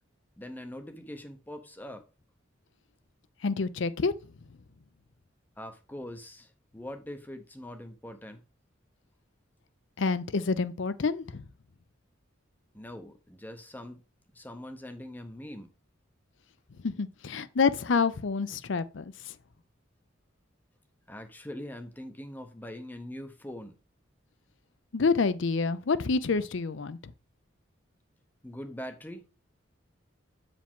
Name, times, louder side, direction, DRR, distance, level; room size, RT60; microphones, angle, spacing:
voice 1, 0.4-2.0 5.6-8.4 12.7-14.0 14.3-15.7 21.1-23.7 28.4-29.4, left 1 dB, 10° left, 0.7 m, -42 dB
voice 2, 3.4-4.1 10.0-11.5 16.8-19.0 24.9-27.1, left 4 dB, 65° left, 0.5 m, -28 dB
8.4 x 5.0 x 3.6 m
head